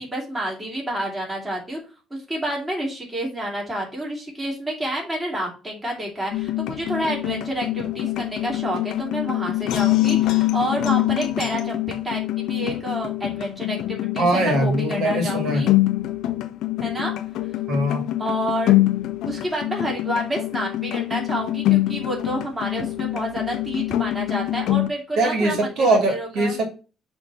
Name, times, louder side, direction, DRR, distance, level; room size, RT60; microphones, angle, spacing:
voice 1, 0.0-1.8 2.1-15.7 16.8-17.1 18.2-18.8 19.3-26.5, right 1 dB, 15° right, -2 dB, 2.9 m, -29 dB
sound 1, 6.3-24.9, left 16 dB, 75° left, 0.6 m, -24 dB
voice 2, 14.2-15.7 17.7-18.1 25.2-26.6, right 2 dB, 70° right, 3 dB, 2.2 m, -21 dB
6.9 x 3.5 x 5.5 m, 0.33 s
cardioid pair, 125°, 0 cm